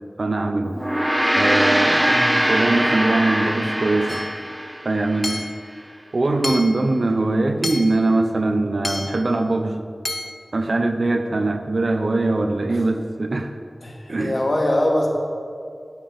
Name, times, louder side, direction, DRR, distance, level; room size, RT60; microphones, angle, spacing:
voice 1, 0.2-0.8 1.3-4.2 4.8-5.5 6.1-9.9 10.5-13.5 14.1-14.3, right 2 dB, 70° right, 7 dB, 0.8 m, -22 dB
Gong, 0.7-5.4, equal, 10° right, 0.5 m, -22 dB
voice 2, 2.0-2.3 13.8-15.1, left 1 dB, 55° left, -1 dB, 2.4 m, -22 dB
Hammer / Chink clink, 4.1-4.4 5.2-5.7 6.4-6.9 7.6-8.1 8.8-9.3 10.0-10.4, left 1 dB, 35° left, 0.7 m, -30 dB
8.5 x 7.1 x 8.7 m, 2.2 s
wide cardioid pair, 50°, 0 cm